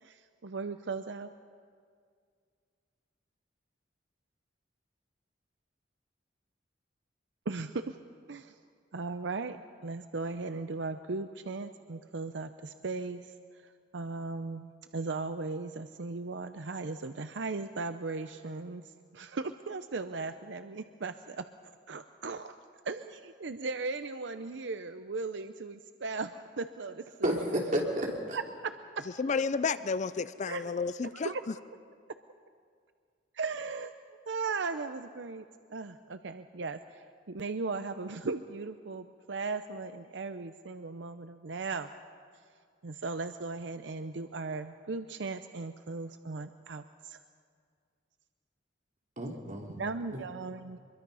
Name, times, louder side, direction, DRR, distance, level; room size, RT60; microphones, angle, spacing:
voice 1, 0.0-1.3 7.5-7.9 8.3-8.5 8.9-9.6 9.8-13.2 13.9-18.8 19.1-21.4 21.9-22.6 22.8-27.3 28.3-28.4 30.5-30.7 31.1-31.4 33.4-33.9 34.3-35.4 35.7-41.9 42.8-47.2 49.8-50.8, right 3 dB, 75° right, 0.7 m, -37 dB
voice 2, 27.2-28.4 49.2-49.8 50.1-50.2, equal, 45° right, 3.4 m, -31 dB
voice 3, 29.2-31.5, left 5 dB, 40° left, 0.5 m, -31 dB
24.5 x 22.5 x 5.6 m
head